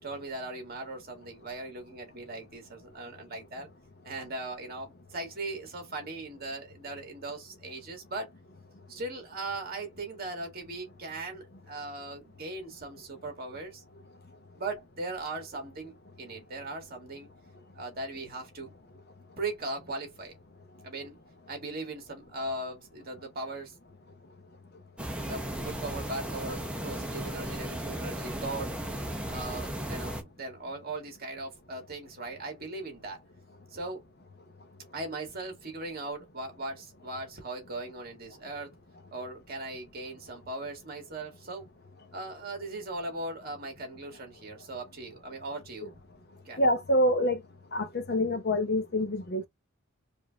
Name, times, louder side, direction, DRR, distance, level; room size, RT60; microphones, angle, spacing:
voice 1, 0.0-3.7 4.0-8.3 8.9-13.8 14.5-17.3 17.7-18.7 19.4-20.4 20.8-21.2 21.5-23.7 25.2-28.8 29.3-33.2 33.7-34.0 34.9-38.7 39.1-41.7 42.1-45.9 46.5-46.6, right 2 dB, 45° right, 1.8 m, -39 dB
sound 1, 25.0-30.2, right 1 dB, 5° right, 0.8 m, -35 dB
voice 2, 46.6-47.4 47.7-49.5, left 1 dB, 50° left, 0.8 m, -26 dB
4.9 x 2.8 x 2.5 m
head